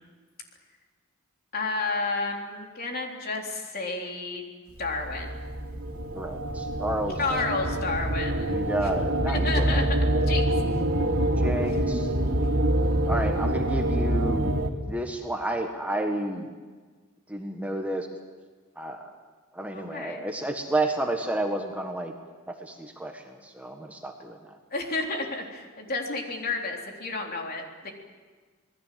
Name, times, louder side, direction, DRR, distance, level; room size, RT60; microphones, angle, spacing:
voice 1, 1.5-4.5 4.8-5.3 7.2-8.6 9.3-9.8 10.3-10.5 19.7-20.2 24.7-27.9, left 3 dB, 45° left, 1 dB, 3.6 m, -31 dB
sound 1, 4.8-14.7, right 1 dB, 85° right, 2.6 m, -26 dB
voice 2, 6.1-7.5 8.4-9.9 11.4-12.1 13.1-14.5 14.8-16.5 17.3-18.1 18.7-19.1 19.5-22.1 22.5-24.6, right 1 dB, 5° right, 3 dB, 1.5 m, -31 dB
27.0 x 19.5 x 7.6 m, 1.4 s
head